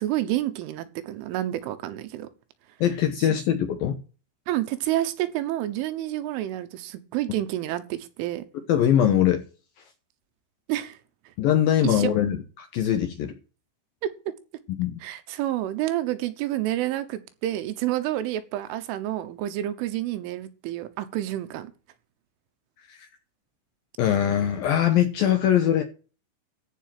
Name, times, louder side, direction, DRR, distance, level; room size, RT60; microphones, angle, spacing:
voice 1, 0.0-2.3 3.2-3.4 4.5-8.5 10.7-11.0 11.3-11.4 11.8-12.1 14.0-14.1 15.0-21.7, right 14 dB, 85° right, 3.6 m, -29 dB
voice 2, 2.8-4.0 8.7-9.4 11.4-13.3 14.8-15.0 22.9-23.1 24.0-25.8, left 10 dB, 75° left, 2.2 m, -22 dB
14.5 x 5.5 x 7.5 m
omnidirectional pair, 5.5 m